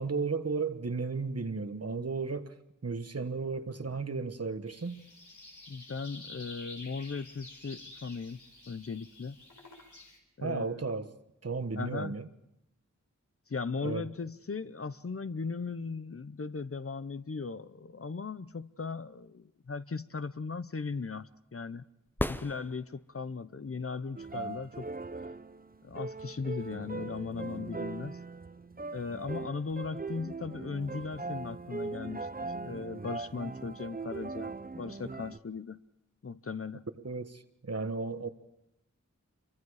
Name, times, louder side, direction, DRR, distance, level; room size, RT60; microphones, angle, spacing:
voice 1, 0.0-2.5 2.8-5.0 10.4-11.1 11.4-12.3 13.8-14.1 37.0-38.3, right 4 dB, 55° right, 1.3 m, -34 dB
sound 1, 4.7-10.2, left 2 dB, 85° left, 4.4 m, -50 dB
voice 2, 5.7-8.4 8.7-9.4 10.4-10.8 11.8-12.2 13.5-21.8 22.3-24.9 25.8-28.2 28.9-35.8 36.2-36.8, left 4 dB, 50° left, 0.7 m, -38 dB
sound 2, 22.1-23.3 27.2-27.3, left 1 dB, 5° left, 0.7 m, -35 dB
sound 3, 24.1-35.4, right 3 dB, 30° right, 0.8 m, -40 dB
27.5 x 24.0 x 4.9 m
wide cardioid pair, 65°, 30 cm